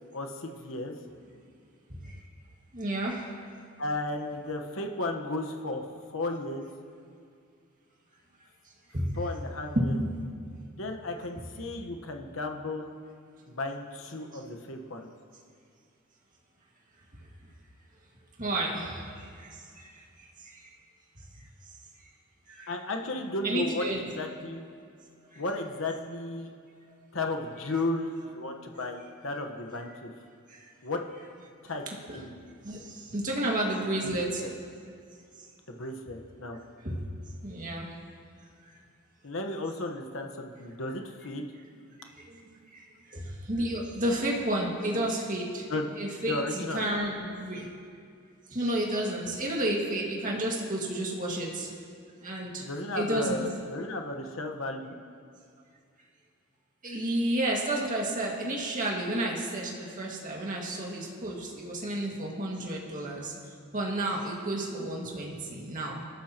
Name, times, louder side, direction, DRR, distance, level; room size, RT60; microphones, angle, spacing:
voice 1, 0.1-1.0 3.8-6.7 9.2-10.0 10.8-12.9 13.5-15.1 22.7-23.8 24.2-24.6 25.3-26.5 27.1-30.1 30.8-31.0 31.6-31.8 32.1-32.3 34.0-34.1 34.4-34.5 35.7-36.6 39.2-41.5 45.7-45.9 46.3-46.8 52.6-54.9, left 2 dB, 70° left, 3 dB, 1.2 m, -34 dB
voice 2, 1.9-2.2 2.7-3.3 8.9-9.2 9.8-10.1 18.4-20.7 21.2-21.3 21.6-22.1 22.5-22.7 23.4-24.0 25.3-25.4 30.5-30.7 32.1-32.2 32.6-34.4 35.4-35.5 36.8-37.0 37.4-38.0 38.7-38.8 42.0-45.7 46.0-47.7 48.5-51.7 52.2-52.6 53.0-53.4 56.8-63.3 63.7-66.0, right 1 dB, 40° right, -2 dB, 2.0 m, -31 dB
27.5 x 13.0 x 3.0 m, 2.3 s
head